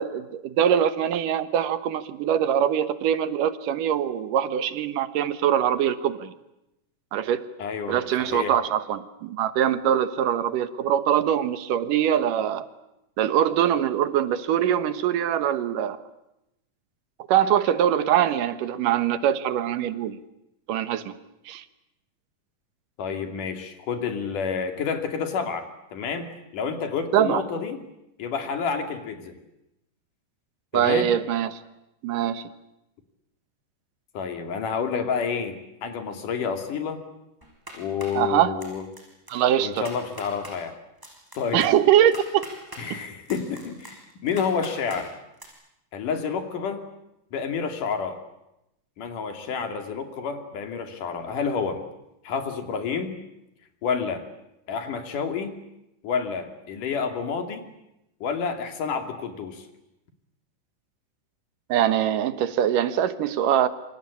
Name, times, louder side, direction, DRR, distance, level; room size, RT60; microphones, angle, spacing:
voice 1, 0.0-6.3 7.1-7.5 7.9-12.7 13.2-16.0 17.3-20.2 20.7-21.2 21.5-21.6 27.1-27.4 30.7-31.6 32.0-32.4 38.2-38.6 39.3-39.9 41.5-42.5 42.9-43.0 61.7-63.7, right 10 dB, 85° right, 12 dB, 2.8 m, -23 dB
voice 2, 7.6-8.5 23.0-27.8 28.2-29.4 30.7-31.1 34.1-37.0 37.7-38.9 39.6-40.8 41.4-41.7 42.8-45.1 45.9-46.9 47.3-48.2 49.0-51.8 52.2-53.2 53.8-54.2 54.7-55.6 56.0-57.6 58.2-59.6, left 6 dB, 75° left, 6 dB, 4.1 m, -29 dB
sound 1, 37.4-38.2 38.6-39.0 39.3-39.4 39.7-40.5 41.0-42.8 43.3-45.0 45.4-45.5, equal, 5° right, 5.7 m, -42 dB
27.0 x 25.5 x 8.6 m, 0.87 s
omnidirectional pair, 3.7 m